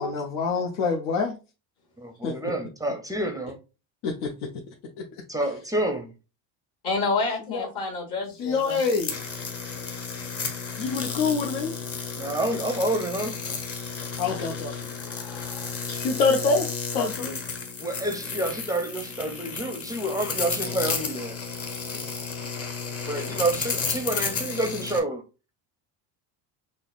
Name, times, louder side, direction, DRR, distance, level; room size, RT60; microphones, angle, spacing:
voice 1, 0.0-1.4 2.2-2.3 4.0-4.3 5.0-5.1 7.5-7.7 8.4-9.2 10.8-11.7 14.2-14.7 16.0-17.4 21.9-22.1, left 4 dB, 80° left, 0.8 m, -26 dB
voice 2, 2.0-3.6 5.3-6.1 12.2-13.4 17.8-21.4 23.0-25.2, right 1 dB, 10° right, 0.4 m, -28 dB
voice 3, 6.8-8.8 15.0-16.0, left 3 dB, 50° left, 1.3 m, -30 dB
sound 1, 8.6-25.0, left 5 dB, 30° left, 0.8 m, -33 dB
5.5 x 2.0 x 2.4 m
supercardioid pair, 105°, 49 cm